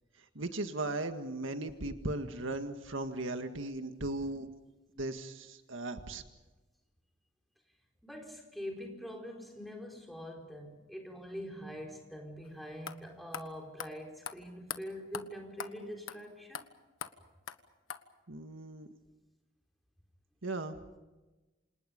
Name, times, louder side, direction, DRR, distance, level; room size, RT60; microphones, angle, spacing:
voice 1, 0.4-4.5 5.0-6.2 18.3-18.9 20.4-20.8, right 2 dB, 80° right, 7 dB, 1.8 m, -37 dB
voice 2, 8.0-16.7, equal, ahead, 1 dB, 4.5 m, -44 dB
sound 1, 12.4-12.5 12.9-13.0 13.3-13.5 13.8-13.9 14.2-14.4 14.7-14.8 15.1-15.2 15.6-15.7 16.1-16.2 16.5-16.6 17.0-17.1 17.5-17.6 17.9-18.0, left 7 dB, 85° left, 1.4 m, -40 dB
28.5 x 27.5 x 5.3 m, 1.1 s
head